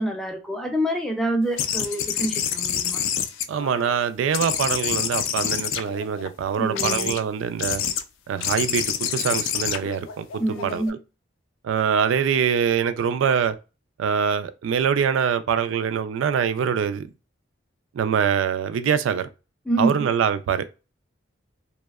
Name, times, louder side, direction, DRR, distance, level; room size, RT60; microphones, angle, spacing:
voice 1, 0.0-3.0 6.6-7.2 10.4-11.0 19.7-20.0, right 1 dB, ahead, 0.3 m, -26 dB
sound 1, 1.6-4.0 4.3-6.3 6.8-7.2 7.6-8.0 8.4-10.9, left 9 dB, 80° left, 0.3 m, -27 dB
voice 2, 3.5-7.8 8.3-10.8 11.6-13.6 14.0-17.1 17.9-19.3 19.8-20.7, right 7 dB, 75° right, 0.3 m, -24 dB
2.6 x 2.0 x 2.2 m
head